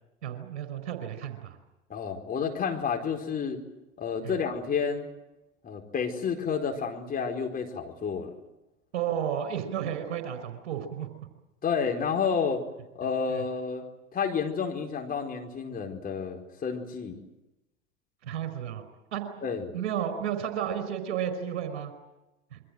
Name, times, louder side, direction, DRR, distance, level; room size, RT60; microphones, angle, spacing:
voice 1, 0.2-1.6 4.2-4.3 8.9-11.1 13.3-13.4 18.2-18.8 19.1-19.4 19.7-21.9 22.5-22.6, right 9 dB, 60° right, 10 dB, 5.1 m, -32 dB
voice 2, 1.9-3.6 4.0-5.1 5.6-8.4 11.6-12.6 12.9-13.8 14.1-17.2 19.4-19.7, left 6 dB, 25° left, 3 dB, 4.7 m, -30 dB
27.5 x 24.0 x 7.9 m, 0.97 s
figure-of-eight pair, 85°, 38 cm